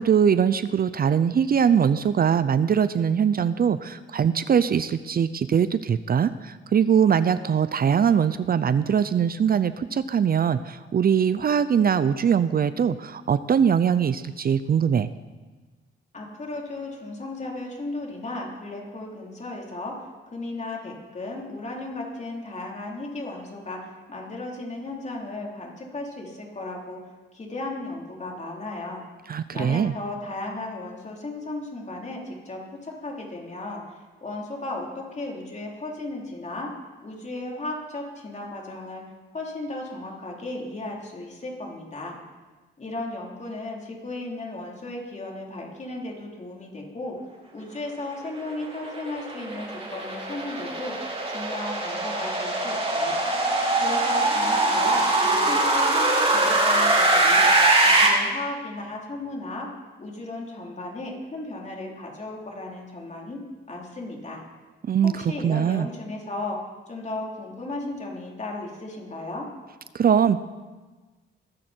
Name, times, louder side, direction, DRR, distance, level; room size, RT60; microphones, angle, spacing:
voice 1, 0.0-15.1 29.3-29.9 64.8-65.9 69.9-70.4, right 7 dB, 45° right, 13 dB, 0.6 m, -22 dB
voice 2, 16.1-20.0 20.3-27.0 27.3-29.0 29.5-36.7 37.0-39.0 39.3-42.2 42.8-47.2 47.5-51.0 51.3-53.2 53.8-57.5 57.8-59.7 60.0-63.4 63.7-64.4 65.0-66.6 66.9-69.5, left 2 dB, 35° left, -1 dB, 3.9 m, -35 dB
sound 1, 48.5-58.1, right 2 dB, 30° right, 5.2 m, -22 dB
21.5 x 14.0 x 4.5 m, 1.3 s
cardioid pair, 110°, 21 cm